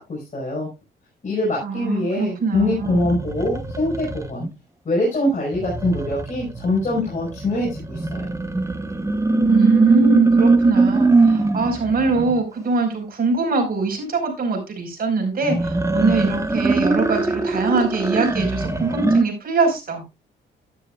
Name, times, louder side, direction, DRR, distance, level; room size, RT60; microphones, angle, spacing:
voice 1, 0.1-0.7 1.2-4.5 4.9-8.3, left 1 dB, 40° left, -3 dB, 5.4 m, -23 dB
voice 2, 1.6-3.1 9.4-20.1, right 4 dB, 50° right, 2 dB, 5.1 m, -23 dB
sound 1, 2.5-4.5 5.5-12.4 15.4-19.2, right 3 dB, 15° right, 1.2 m, -21 dB
12.0 x 11.0 x 2.4 m, 0.26 s
cardioid pair, 90°, 20 cm